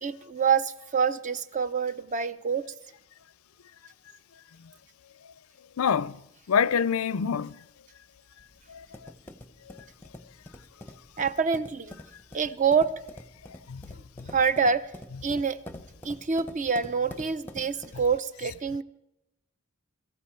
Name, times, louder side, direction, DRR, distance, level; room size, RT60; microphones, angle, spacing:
voice 1, 0.0-2.7 11.2-11.9 12.3-12.9 14.3-14.8 15.2-15.6 16.0-18.8, right 5 dB, 35° right, 0.6 m, -26 dB
voice 2, 5.8-6.2 6.5-7.6 8.7-9.1 13.7-13.8 14.2-14.3, left 7 dB, 80° left, 0.5 m, -26 dB
sound 1, 8.4-18.2, left 1 dB, 10° left, 0.7 m, -46 dB
22.0 x 14.5 x 4.5 m
head